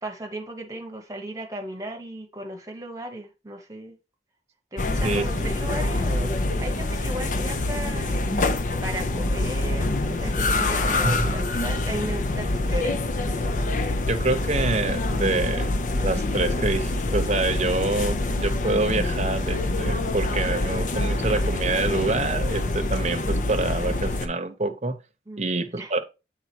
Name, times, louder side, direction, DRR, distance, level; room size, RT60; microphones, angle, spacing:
voice 1, 0.0-4.0 4.7-8.2 8.8-13.0 25.3-25.5 25.8-26.0, right 1 dB, 20° right, 1.1 m, -35 dB
sound 1, 4.8-24.3, left 2 dB, 45° left, 0.6 m, -25 dB
voice 2, 5.0-5.5 11.0-11.4 14.1-25.0 25.4-26.0, right 2 dB, 40° right, 0.9 m, -26 dB
8.2 x 3.6 x 4.5 m
head